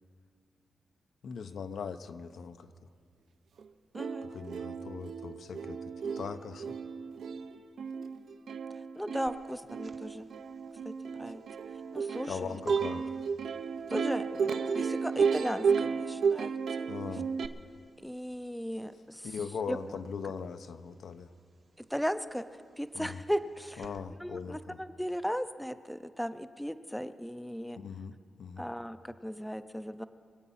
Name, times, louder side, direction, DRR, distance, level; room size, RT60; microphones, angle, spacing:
voice 1, 1.2-2.7 4.2-6.8 12.3-13.2 16.9-17.3 19.2-21.3 22.9-23.2 23.8-24.8 27.8-28.6, left 6 dB, 70° left, 10 dB, 0.7 m, -40 dB
Plucked string instrument, 3.6-3.7 3.9-17.5, right 6 dB, 70° right, 0.7 m, -33 dB
voice 2, 3.9-4.3 9.0-10.3 10.8-11.4 11.9-12.6 13.9-16.6 18.0-19.3 19.7-20.0 21.8-22.5 22.8-23.9 24.2-27.8 28.6-30.0, equal, ahead, 11 dB, 0.5 m, -36 dB
sound 1, 9.3-19.5 19.8-24.0, right 4 dB, 40° right, 0.8 m, -46 dB
24.5 x 8.2 x 5.6 m, 2.2 s
cardioid pair, 105°, 0 cm